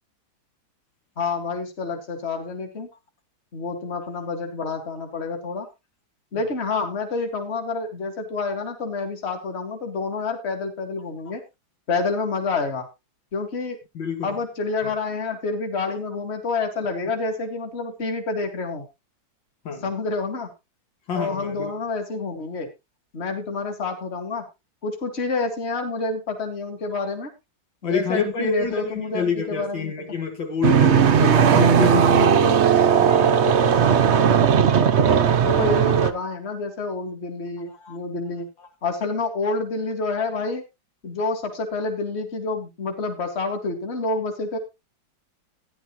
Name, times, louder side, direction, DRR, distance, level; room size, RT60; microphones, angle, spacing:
voice 1, 1.2-2.9 3.5-5.7 6.3-11.4 11.9-12.9 13.3-13.8 14.2-18.9 19.8-20.5 21.1-22.7 23.1-24.5 24.8-27.3 27.8-29.9 35.4-38.5 38.8-40.6 41.0-44.6, left 3 dB, 35° left, 2.2 m, -28 dB
voice 2, 13.9-14.3 14.8-14.9 19.6-19.9 21.1-21.7 27.8-33.9 37.7-38.0, left 5 dB, 75° left, 2.6 m, -28 dB
sound 1, 30.6-36.1, right 7 dB, 55° right, 0.7 m, -17 dB
14.0 x 10.5 x 3.0 m
omnidirectional pair, 2.1 m